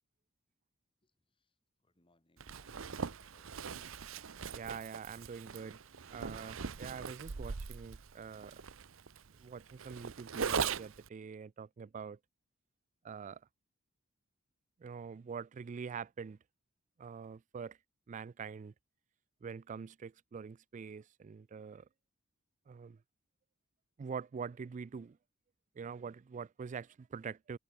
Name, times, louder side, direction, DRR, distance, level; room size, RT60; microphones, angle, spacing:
voice 1, 1.8-3.9, left 1 dB, 25° left, 2.6 m, -69 dB
Zipper (clothing), 2.4-11.1, right 6 dB, 75° right, 0.8 m, -40 dB
voice 2, 4.5-5.8 6.1-8.5 9.4-12.2 13.0-13.5 14.8-16.4 17.0-17.8 18.1-18.7 19.4-21.9 22.7-23.0 24.0-25.2 25.8-27.6, right 6 dB, 35° right, 0.3 m, -45 dB
head